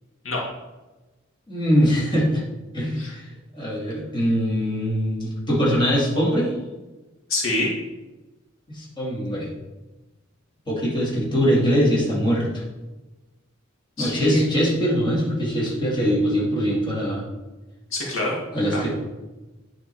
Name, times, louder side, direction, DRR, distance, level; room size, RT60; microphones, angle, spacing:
voice 1, 1.5-2.4 2.7-3.3 3.5-6.5 8.7-9.5 10.7-12.6 14.0-17.2 18.5-18.9, equal, 25° left, -6 dB, 2.2 m, -22 dB
voice 2, 7.3-7.7 14.0-14.4 17.9-18.4 18.7-18.9, left 2 dB, 80° left, -3 dB, 2.0 m, -26 dB
9.4 x 3.7 x 4.5 m, 1.1 s
head